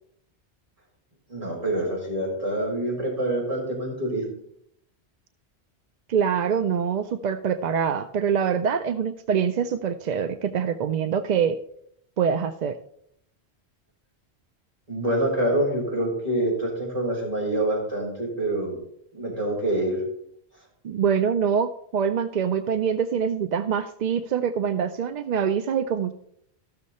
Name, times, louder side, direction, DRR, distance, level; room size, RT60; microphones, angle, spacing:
voice 1, 1.3-4.3 14.9-18.8 19.1-20.0, right 1 dB, 35° right, -5 dB, 4.1 m, -26 dB
voice 2, 6.1-11.6 12.2-12.8 20.8-26.1, right 7 dB, 55° right, 10 dB, 0.5 m, -24 dB
14.0 x 6.4 x 4.2 m, 0.70 s
omnidirectional pair, 1.1 m